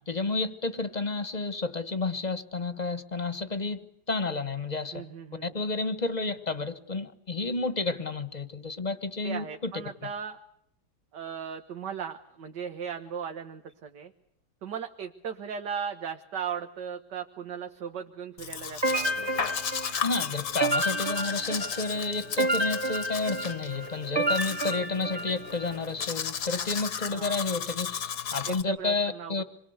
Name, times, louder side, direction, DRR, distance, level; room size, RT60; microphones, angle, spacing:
voice 1, 0.1-5.0 5.5-9.7 20.0-29.4, left 3 dB, 25° left, 12 dB, 1.4 m, -31 dB
voice 2, 4.9-5.5 9.2-10.4 11.1-14.1 14.6-19.2 27.1-27.4 28.5-29.4, right 7 dB, 70° right, 5 dB, 1.9 m, -37 dB
Domestic sounds home sounds, 18.4-28.6, left 7 dB, 60° left, 1.8 m, -35 dB
sound 1, 18.8-25.8, right 2 dB, 15° right, 1.4 m, -30 dB
27.0 x 22.5 x 8.1 m, 0.72 s
omnidirectional pair, 1.9 m